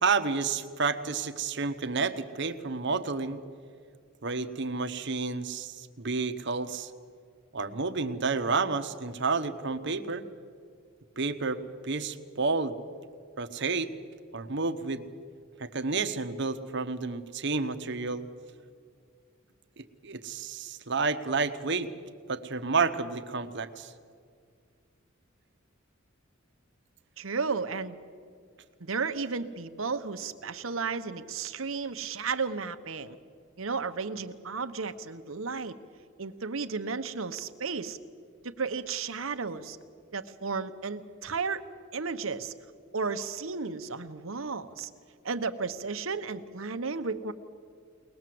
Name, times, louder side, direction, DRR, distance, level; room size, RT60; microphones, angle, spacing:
voice 1, 0.0-3.4 4.2-6.9 7.5-10.2 11.2-12.8 13.4-13.9 14.3-15.0 15.6-18.3 19.8-21.9 22.3-23.9, right 4 dB, 60° right, 9 dB, 1.1 m, -30 dB
voice 2, 27.2-28.0 28.8-33.2 33.6-35.7 36.2-38.0 38.4-39.8 40.1-41.6 41.9-42.5 42.9-44.9 45.2-47.3, right 4 dB, 80° right, 9 dB, 1.1 m, -33 dB
22.5 x 19.5 x 7.8 m, 2.1 s
head